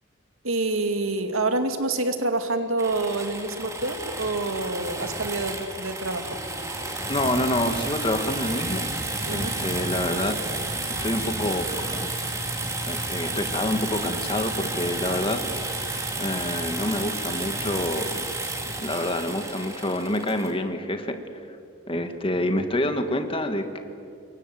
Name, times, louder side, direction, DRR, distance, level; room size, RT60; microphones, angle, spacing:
voice 1, 0.4-6.4 9.3-9.5, right 2 dB, 85° right, 7 dB, 2.1 m, -27 dB
sound 1, 2.8-20.5, right 2 dB, 15° right, 2.6 m, -31 dB
voice 2, 7.1-8.9 9.3-10.4 11.0-12.2 12.9-15.4 16.2-18.1 18.6-21.2 21.9-23.8, left 1 dB, 25° left, 7 dB, 1.8 m, -27 dB
27.0 x 22.5 x 7.8 m, 2.4 s
head